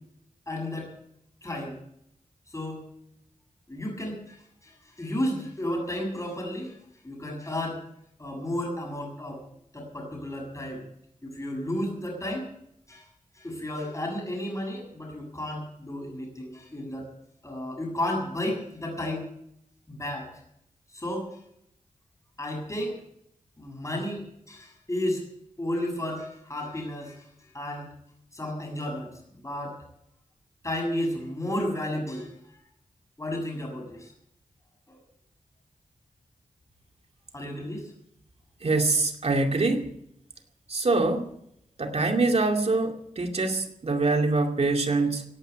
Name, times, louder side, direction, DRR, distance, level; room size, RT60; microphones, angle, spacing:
voice 1, 0.5-0.9 1.4-1.8 2.5-2.9 3.7-6.8 7.0-7.8 8.2-9.4 9.7-10.8 11.2-12.5 12.9-13.1 13.3-17.1 17.4-19.2 19.9-20.3 20.9-21.4 22.4-23.0 23.6-24.2 24.5-25.2 25.6-27.9 28.3-29.8 30.6-32.3 33.2-34.1 34.9-35.0 37.3-37.9, left 1 dB, 25° left, 1 dB, 6.9 m, -33 dB
voice 2, 38.6-39.9 40.7-41.3 41.8-45.2, right 3 dB, 50° right, 4 dB, 2.4 m, -24 dB
17.5 x 8.7 x 9.2 m, 0.73 s
cardioid pair, 60°, 13 cm